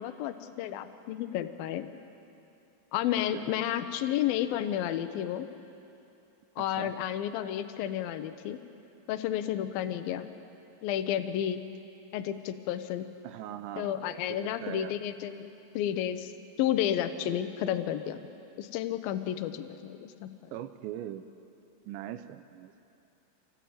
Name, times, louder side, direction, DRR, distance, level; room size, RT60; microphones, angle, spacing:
voice 1, 0.0-1.9 2.9-5.5 6.6-8.6 9.1-10.3 10.8-11.6 12.1-13.1 13.8-16.3 16.6-18.2 18.6-20.5, left 11 dB, 80° left, 9 dB, 2.2 m, -31 dB
voice 2, 6.6-6.9 13.2-15.0 20.5-21.3 21.9-22.7, right 12 dB, 80° right, 10 dB, 2.9 m, -41 dB
27.0 x 18.0 x 8.7 m, 2.7 s
omnidirectional pair, 5.4 m